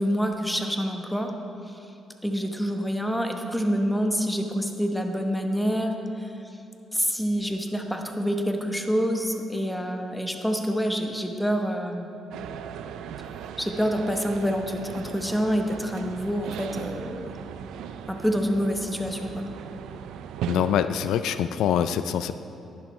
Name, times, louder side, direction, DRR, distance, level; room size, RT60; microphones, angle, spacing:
voice 1, 0.0-1.3 1.7-1.8 2.2-5.9 6.2-6.3 6.9-12.1 13.6-17.3 18.1-19.4, equal, 5° left, 4 dB, 1.0 m, -27 dB
sound 1, 12.3-20.9, right 8 dB, 85° right, 0.4 m, -37 dB
voice 2, 20.5-22.3, left 9 dB, 80° left, 11 dB, 0.3 m, -24 dB
11.0 x 10.5 x 3.2 m, 2.9 s
cardioid pair, 90°, 0 cm